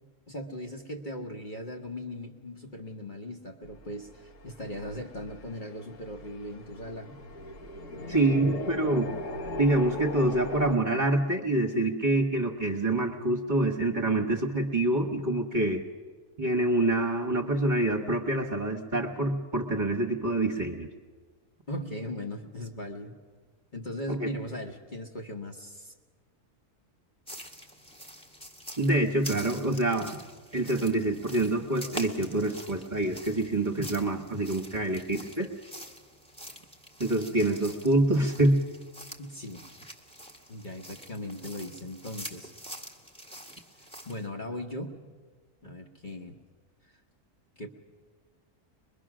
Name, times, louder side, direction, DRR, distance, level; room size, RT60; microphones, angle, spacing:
voice 1, 0.3-7.1 7.9-8.6 21.7-23.1 23.7-25.9 39.2-39.6 40.5-42.5 44.0-44.9 45.6-46.3 47.6-47.7, left 1 dB, 35° left, 1 dB, 1.3 m, -38 dB
sound 1, 3.6-10.8, left 1 dB, 55° left, 1.4 m, -39 dB
voice 2, 8.1-9.1 9.6-15.8 16.4-20.9 24.1-24.3 28.8-30.2 30.5-35.5 37.0-38.6, right 2 dB, 35° right, 1 dB, 1.4 m, -26 dB
sound 2, 27.3-44.3, equal, 5° left, 1.3 m, -46 dB
23.0 x 22.0 x 6.2 m, 1.4 s
omnidirectional pair, 1.6 m